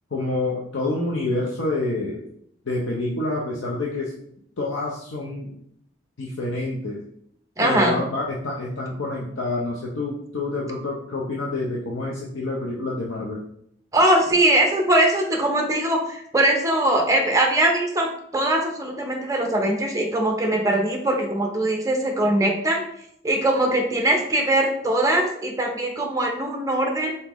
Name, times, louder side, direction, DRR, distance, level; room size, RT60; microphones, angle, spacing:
voice 1, 0.1-2.2 2.7-4.1 4.6-5.5 6.2-7.0 7.6-13.4, left 2 dB, 85° left, -3 dB, 0.7 m, -27 dB
voice 2, 7.6-8.0 13.9-18.1 18.3-22.8 23.2-27.2, right 1 dB, 15° right, 2 dB, 0.6 m, -21 dB
4.2 x 3.7 x 3.0 m, 0.72 s
head